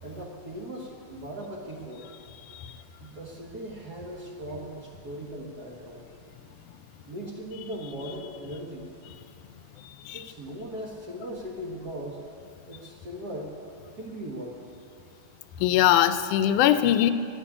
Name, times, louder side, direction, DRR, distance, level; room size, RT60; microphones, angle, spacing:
voice 1, 0.0-2.1 3.0-6.0 7.1-8.9 10.1-12.2 12.7-13.6 14.0-14.6, right 1 dB, 50° right, -1 dB, 1.2 m, -38 dB
voice 2, 15.6-17.1, left 11 dB, 85° left, 12 dB, 2.1 m, -21 dB
12.5 x 10.0 x 9.9 m, 2.5 s
omnidirectional pair, 3.5 m